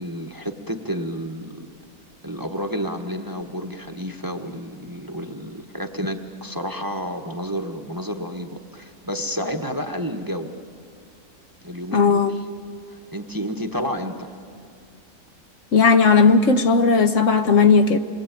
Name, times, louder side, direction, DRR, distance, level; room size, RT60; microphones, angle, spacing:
voice 1, 0.0-1.7 2.2-10.5 11.6-12.4 12.9-14.3, equal, 15° right, 1.1 m, -30 dB
voice 2, 11.9-12.3 15.7-18.0, left 4 dB, 60° left, 1.2 m, -16 dB
27.5 x 21.0 x 9.0 m
omnidirectional pair, 1.6 m